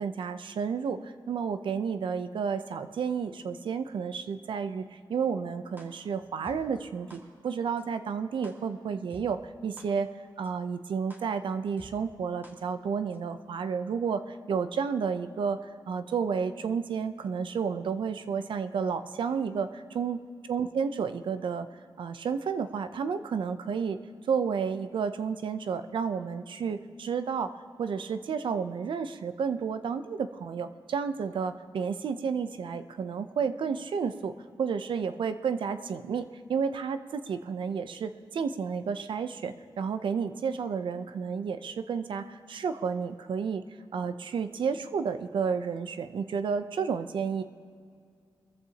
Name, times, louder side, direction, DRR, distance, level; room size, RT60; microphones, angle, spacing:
voice 1, 0.0-10.1 10.4-15.6 15.9-20.2 20.5-21.7 22.0-24.0 24.3-27.5 27.8-34.3 34.6-43.6 43.9-47.4, right 6 dB, 85° right, 11 dB, 0.6 m, -31 dB
sound 1, 5.8-5.9 6.4-6.5 7.1-7.2 7.8-7.9 8.4-8.5 9.1-9.2 9.8-9.9 10.4-10.5 11.1-11.2 11.8-11.9 12.4-12.5 13.1-13.2, right 1 dB, 25° right, 2.0 m, -49 dB
22.0 x 14.0 x 2.9 m, 2.2 s
wide cardioid pair, 95°, 8 cm